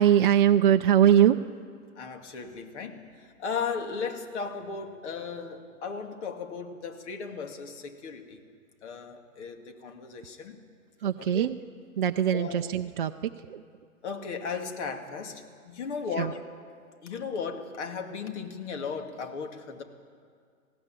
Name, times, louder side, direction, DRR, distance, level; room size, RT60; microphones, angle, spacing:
voice 1, 0.0-1.4 11.0-11.6 12.0-13.6 16.2-16.3, right 10 dB, 35° right, 6 dB, 0.4 m, -22 dB
voice 2, 2.0-8.4 8.8-10.6 11.3-11.5 12.3-12.6 14.0-16.4 17.0-19.8, left 5 dB, 50° left, 5 dB, 2.5 m, -36 dB
20.0 x 16.5 x 9.0 m, 2.1 s
hypercardioid pair, 155°, 44 cm